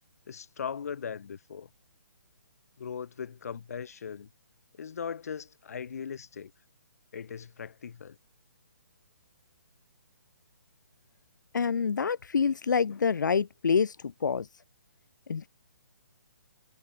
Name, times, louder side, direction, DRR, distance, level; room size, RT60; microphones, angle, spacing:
voice 1, 0.3-1.7 2.8-4.3 4.8-6.5 7.1-8.2, left 7 dB, 55° left, 1.4 m, -39 dB
voice 2, 11.5-14.0 14.2-14.5 15.3-15.5, left 6 dB, 80° left, 0.7 m, -26 dB
hypercardioid pair, 170°, 10 cm